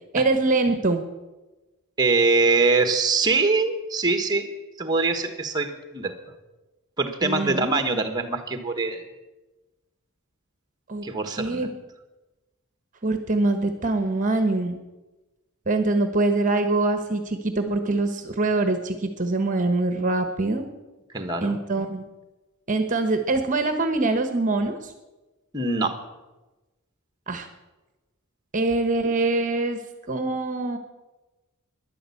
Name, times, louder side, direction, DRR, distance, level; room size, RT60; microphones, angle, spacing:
voice 1, 0.1-1.0 7.2-7.8 10.9-11.1 11.4-11.7 13.0-14.8 15.7-20.7 21.4-22.0 22.7-24.9 27.3-27.5 28.5-29.8 30.1-30.8, right 2 dB, 35° right, 7 dB, 1.2 m, -24 dB
voice 2, 2.0-4.5 4.8-6.2 7.0-9.0 11.0-11.7 21.1-21.6 25.5-26.0, right 3 dB, 20° right, 7 dB, 1.4 m, -23 dB
13.5 x 11.0 x 8.5 m, 1.1 s
head